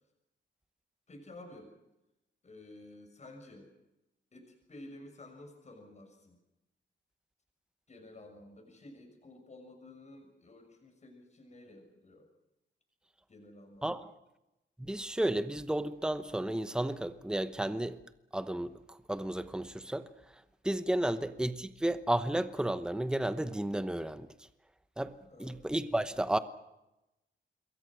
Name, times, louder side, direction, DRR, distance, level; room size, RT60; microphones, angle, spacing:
voice 1, 1.1-1.7 2.4-3.7 4.3-6.4 7.9-12.3 13.3-14.1 21.1-21.2 25.2-25.6, left 1 dB, 35° left, 6.7 m, -52 dB
voice 2, 14.8-18.0 18.3-20.1 20.6-24.3 25.0-25.1 25.4-26.4, right 1 dB, 5° right, 0.9 m, -32 dB
27.5 x 22.5 x 6.4 m
wide cardioid pair, 155°, 20 cm